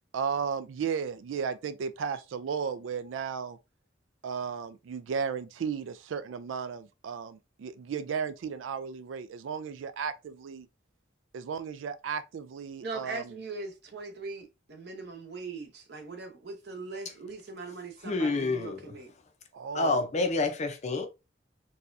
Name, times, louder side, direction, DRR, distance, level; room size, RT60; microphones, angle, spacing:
voice 1, 0.1-3.6 4.2-10.7 11.3-13.3 19.5-20.0, right 6 dB, 85° right, 0.3 m, -34 dB
voice 2, 12.8-19.1, right 3 dB, 60° right, 0.8 m, -40 dB
voice 3, 18.0-18.8 19.7-21.1, left 3 dB, 35° left, 0.6 m, -28 dB
4.1 x 2.3 x 2.5 m
head